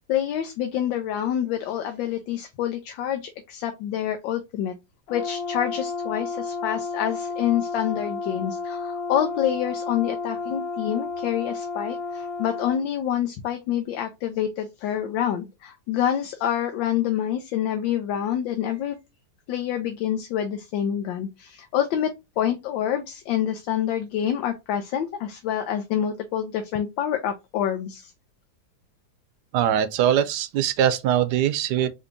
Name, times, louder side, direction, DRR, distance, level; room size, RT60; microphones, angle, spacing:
voice 1, 0.0-4.7 5.1-19.0 19.5-28.1, left 10 dB, 90° left, 1.4 m, -27 dB
Brass instrument, 5.1-12.8, left 4 dB, 60° left, 0.7 m, -31 dB
voice 2, 29.5-31.9, right 10 dB, 75° right, 1.1 m, -22 dB
4.3 x 2.8 x 2.6 m
omnidirectional pair, 2.0 m